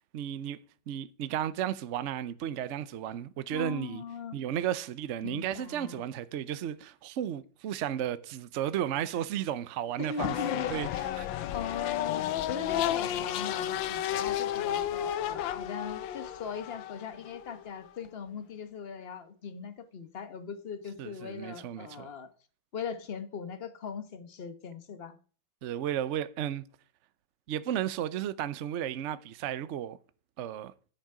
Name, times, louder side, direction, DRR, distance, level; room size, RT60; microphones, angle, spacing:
voice 1, 0.1-0.6 0.9-4.0 4.3-10.9 11.2-11.4 21.0-22.1 25.6-26.6 27.5-30.0 30.4-30.7, right 10 dB, 60° right, 0.8 m, -34 dB
voice 2, 3.5-4.4 5.2-6.0 10.0-10.7 11.3-22.3 22.7-25.2, left 6 dB, 35° left, 1.2 m, -39 dB
sound 1, 10.2-18.1, left 11 dB, 85° left, 1.4 m, -32 dB
10.5 x 9.1 x 4.9 m
omnidirectional pair, 2.0 m